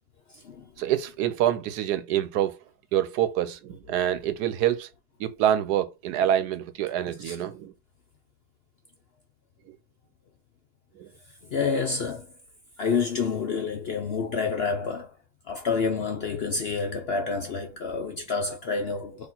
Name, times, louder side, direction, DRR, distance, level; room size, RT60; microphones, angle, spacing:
voice 1, 0.8-2.6 2.9-4.9 5.2-7.7 11.0-11.1, right 11 dB, 85° right, 1.2 m, -26 dB
voice 2, 11.5-12.3 12.8-15.1 15.5-19.3, left 5 dB, 65° left, 0.6 m, -28 dB
4.3 x 2.9 x 3.8 m
omnidirectional pair, 1.7 m